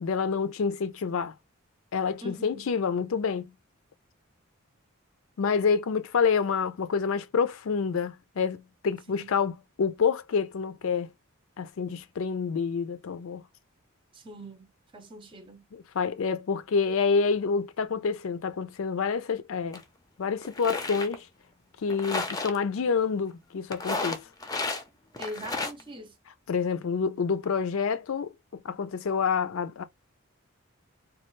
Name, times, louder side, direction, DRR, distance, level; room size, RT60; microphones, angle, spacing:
voice 1, 0.0-1.3 1.9-3.5 5.4-11.1 11.6-13.4 15.7-19.8 20.2-21.3 21.8-24.3 26.5-28.3 28.6-29.8, left 5 dB, 70° left, 0.4 m, -28 dB
voice 2, 2.2-2.7 9.1-9.3 14.1-15.6 25.2-26.2, equal, 25° right, 0.6 m, -42 dB
sound 1, 19.7-19.8 20.4-21.1 21.9-22.6 23.7-24.8 25.1-25.8, left 3 dB, 20° left, 0.5 m, -32 dB
3.1 x 2.3 x 3.1 m
head